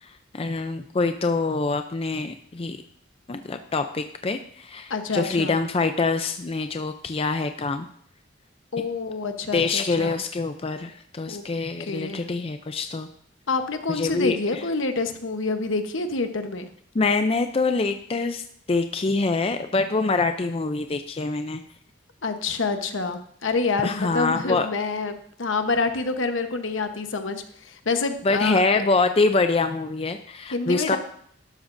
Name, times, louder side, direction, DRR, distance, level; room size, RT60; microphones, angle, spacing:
voice 1, 0.0-2.8 3.3-7.9 9.5-13.1 13.9-14.6 16.9-21.6 23.8-24.7 28.2-31.0, left 3 dB, 30° left, 8 dB, 0.4 m, -25 dB
voice 2, 4.9-5.6 8.7-10.2 11.3-11.4 11.8-12.2 13.5-16.7 22.2-28.8 30.5-31.0, left 3 dB, 75° left, 7 dB, 1.1 m, -27 dB
12.5 x 12.0 x 2.6 m, 0.65 s
head